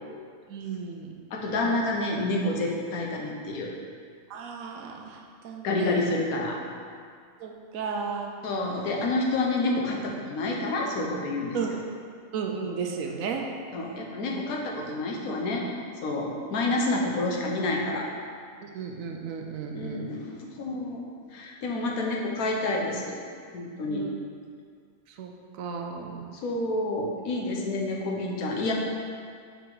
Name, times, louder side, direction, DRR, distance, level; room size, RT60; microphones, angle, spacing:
voice 1, 0.5-1.1 4.3-6.0 7.4-8.3 11.5-11.7 12.3-13.5 18.6-20.1 23.9-24.1 25.2-25.3 25.6-26.2, right 5 dB, 75° right, 2 dB, 1.0 m, -34 dB
voice 2, 1.3-3.7 5.6-6.6 8.4-11.8 13.7-15.7 16.0-18.1 19.7-21.0 21.3-23.2 23.5-24.1 26.4-28.7, left 2 dB, 85° left, 0 dB, 1.3 m, -28 dB
5.1 x 4.4 x 4.7 m, 2.1 s
omnidirectional pair, 1.5 m